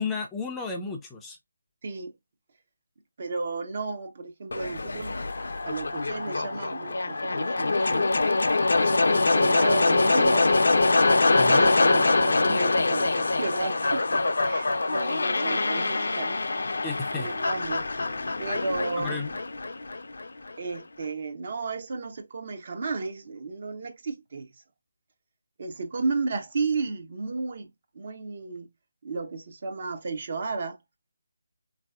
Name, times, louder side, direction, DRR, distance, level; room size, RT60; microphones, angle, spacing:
voice 1, 0.0-1.4 11.3-11.7 16.8-17.3 19.0-19.4, left 4 dB, 10° left, 0.4 m, -33 dB
voice 2, 3.2-5.2 5.7-8.1 8.8-10.5 11.1-14.1 14.4-16.5 17.1-17.9 18.4-19.2 20.6-24.5 25.6-28.7 29.0-30.8, right 4 dB, 45° right, 0.6 m, -33 dB
sound 1, 4.5-20.5, left 3 dB, 70° left, 0.4 m, -24 dB
3.1 x 2.6 x 2.3 m
figure-of-eight pair, 160°, 0 cm